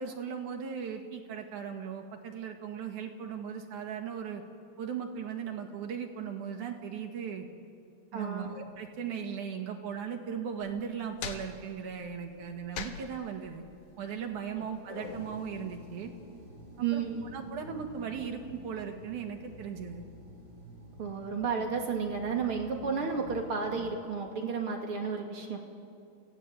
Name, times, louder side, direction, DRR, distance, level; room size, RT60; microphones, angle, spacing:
voice 1, 0.0-4.4 4.8-7.5 8.1-13.6 14.0-16.1 16.8-17.0 17.3-20.0, right 7 dB, 90° right, 3 dB, 3.3 m, -38 dB
voice 2, 8.1-8.6 14.5-14.7 16.8-17.3 21.0-25.6, right 5 dB, 50° right, 2 dB, 2.9 m, -32 dB
sound 1, 10.6-15.6, left 6 dB, 85° left, 2.8 m, -44 dB
sound 2, 15.0-23.9, left 1 dB, 30° right, 4.3 m, -50 dB
30.0 x 16.5 x 8.4 m, 2.4 s
omnidirectional pair, 3.4 m